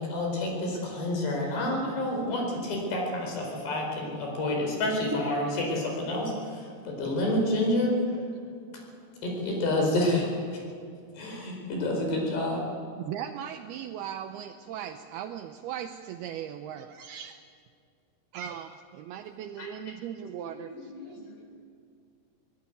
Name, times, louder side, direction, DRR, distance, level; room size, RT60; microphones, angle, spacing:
voice 1, 0.0-7.9 9.2-10.6 11.2-12.6 19.6-19.7, left 1 dB, 70° left, 1 dB, 6.7 m, -28 dB
voice 2, 13.0-17.4 18.3-21.3, right 10 dB, 80° right, 7 dB, 2.4 m, -38 dB
voice 3, 20.4-21.4, left 2 dB, 50° left, -1 dB, 8.0 m, -45 dB
22.5 x 19.0 x 9.3 m, 2.3 s
omnidirectional pair, 5.1 m